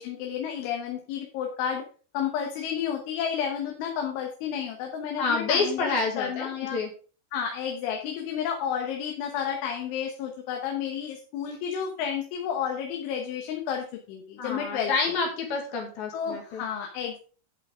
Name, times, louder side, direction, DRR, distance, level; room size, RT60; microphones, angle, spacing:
voice 1, 0.0-1.8 2.1-6.8 7.3-14.9 16.1-17.2, left 8 dB, 80° left, 2 dB, 3.7 m, -31 dB
voice 2, 5.2-6.9 14.4-16.6, left 4 dB, 60° left, 2 dB, 3.6 m, -28 dB
11.0 x 8.0 x 3.8 m, 0.39 s
omnidirectional pair, 5.5 m